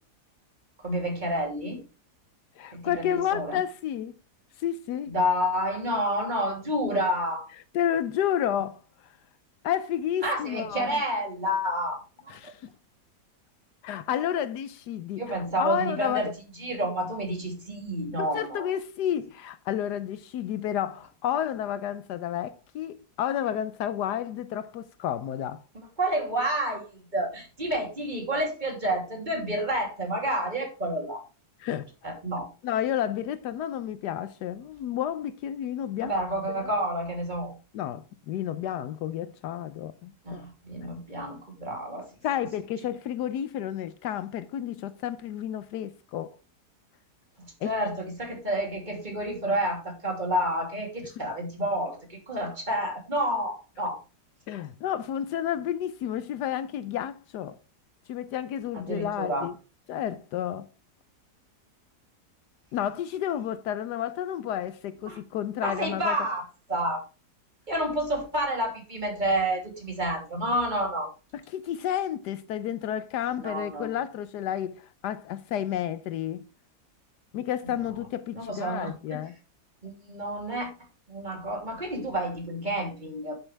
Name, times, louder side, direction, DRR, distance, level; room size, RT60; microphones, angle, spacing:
voice 1, 0.8-1.8 2.7-3.6 5.1-7.5 10.2-12.4 15.2-16.3 16.6-18.7 25.7-31.2 32.0-32.5 36.0-37.5 40.2-42.1 47.4-54.0 58.7-59.5 65.1-65.2 65.6-66.4 66.7-67.0 67.7-71.1 73.4-73.9 77.6-77.8 78.3-79.2 79.8-80.7 81.1-83.3, equal, 25° right, 3.1 m, -29 dB
voice 2, 2.6-4.2 4.6-5.1 7.7-9.2 9.6-11.0 12.3-12.7 13.8-15.2 15.6-16.3 18.2-25.6 31.6-31.9 32.6-36.1 37.7-40.4 40.8-40.9 42.2-46.3 47.6-47.7 54.5-57.6 58.1-59.6 59.9-60.7 62.7-66.2 71.5-76.4 77.3-79.4, left 10 dB, 80° left, 1.2 m, -31 dB
10.5 x 8.4 x 3.4 m
omnidirectional pair, 1.7 m